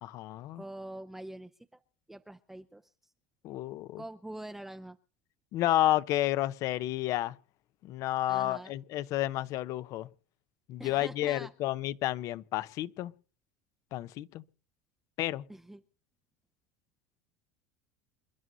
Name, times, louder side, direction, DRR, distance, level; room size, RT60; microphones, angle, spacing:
voice 1, 0.0-0.6 3.4-4.0 5.5-7.4 7.8-10.1 10.7-13.1 13.9-14.4 15.2-15.4, left 14 dB, 55° left, 0.7 m, -31 dB
voice 2, 0.5-1.8 2.1-3.1 4.0-5.0 8.3-8.7 10.8-11.5 15.5-15.8, right 1 dB, 5° right, 0.6 m, -45 dB
28.0 x 11.0 x 2.7 m
supercardioid pair, 120°, 7 cm